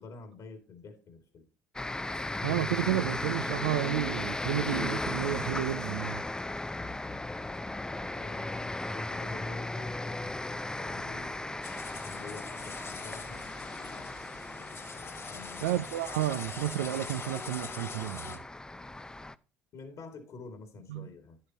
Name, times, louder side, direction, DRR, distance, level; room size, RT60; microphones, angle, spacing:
voice 1, 0.0-1.4 7.9-11.6 12.0-13.5 15.3-15.8 19.7-21.4, left 4 dB, 55° left, 2.3 m, -48 dB
sound 1, 1.8-19.4, left 2 dB, 10° left, 0.5 m, -36 dB
voice 2, 2.4-6.2 15.6-18.4 20.9-21.1, right 14 dB, 80° right, 0.4 m, -31 dB
sound 2, 11.6-18.4, left 5 dB, 40° left, 1.9 m, -43 dB
10.0 x 8.4 x 2.9 m
hypercardioid pair, 60°, 7 cm